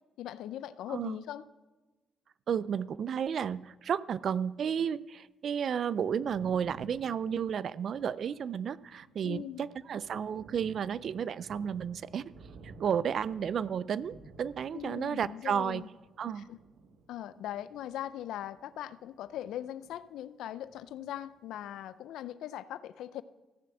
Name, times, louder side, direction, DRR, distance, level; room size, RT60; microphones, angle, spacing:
voice 1, 0.2-1.4 9.2-9.6 14.7-15.9 16.4-16.6 17.1-23.2, left 12 dB, 85° left, 16 dB, 0.4 m, -40 dB
voice 2, 2.5-12.2 12.8-15.8 16.2-16.5, right 7 dB, 60° right, 19 dB, 0.4 m, -32 dB
Thunder, 5.9-20.3 20.5-21.8, right 3 dB, 75° right, 1.2 m, -55 dB
15.0 x 6.9 x 7.8 m, 1.2 s
cardioid pair, 90°, 0 cm